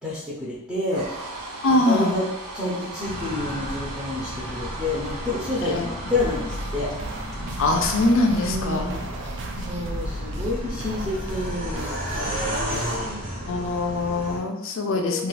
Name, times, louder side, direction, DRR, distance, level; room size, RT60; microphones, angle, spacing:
voice 1, 0.0-1.1 1.8-2.2 2.5-6.9 8.4-9.1 9.5-12.8 14.9-15.3, left 2 dB, 5° right, -7 dB, 0.7 m, -29 dB
sound 1, 0.9-11.2, right 2 dB, 70° right, 0.8 m, -39 dB
voice 2, 1.6-2.2 5.6-5.9 7.6-9.0 9.6-9.7 13.5-15.3, left 2 dB, 60° left, 3 dB, 0.5 m, -23 dB
sound 2, 3.0-14.4, equal, 40° right, 0.8 m, -33 dB
sound 3, 6.1-13.0, right 1 dB, 55° right, 0.4 m, -35 dB
2.4 x 2.4 x 4.0 m, 0.87 s
head